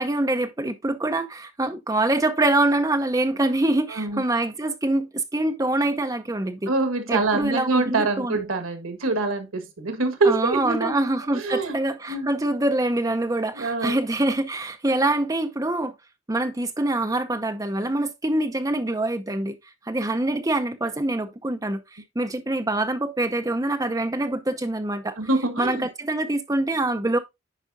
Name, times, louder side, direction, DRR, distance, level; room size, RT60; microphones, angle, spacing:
voice 1, 0.0-6.7 7.1-8.4 10.2-15.9 16.3-19.6 19.9-25.2 25.6-27.2, right 2 dB, 15° right, 0.6 m, -25 dB
voice 2, 6.7-10.9 11.3-11.8 12.1-12.3 13.5-14.0 25.2-25.9, right 3 dB, 90° right, 1.4 m, -25 dB
9.9 x 4.8 x 2.6 m
head